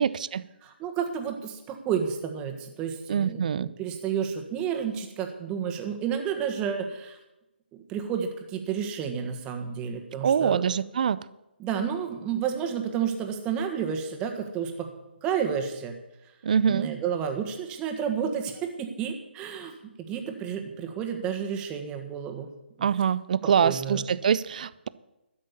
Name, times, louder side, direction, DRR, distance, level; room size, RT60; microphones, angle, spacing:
voice 1, 0.0-0.4 3.1-3.7 10.2-11.2 16.4-16.9 22.8-24.9, right 7 dB, 45° right, 18 dB, 0.5 m, -24 dB
voice 2, 0.6-7.2 7.7-10.6 11.6-14.9 15.2-15.9 16.6-19.7 20.1-22.5 22.8-22.9 23.4-24.0, right 7 dB, 15° right, 5 dB, 1.5 m, -31 dB
12.5 x 6.3 x 9.7 m, 0.96 s
figure-of-eight pair, 140°, 6 cm